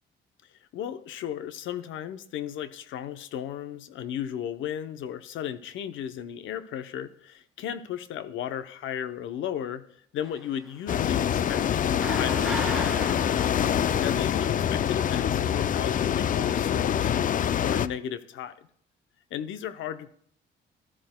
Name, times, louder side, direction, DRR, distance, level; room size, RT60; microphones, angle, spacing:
voice 1, 0.7-9.8 10.1-12.8 14.0-18.5 19.3-20.1, left 10 dB, 80° left, 11 dB, 0.7 m, -35 dB
sound 1, 10.2-14.6 15.3-16.2, right 1 dB, ahead, 2.1 m, -39 dB
sound 2, 10.9-17.9, left 9 dB, 45° left, 0.4 m, -25 dB
13.0 x 12.5 x 2.2 m, 0.63 s
cardioid pair, 90°, 20 cm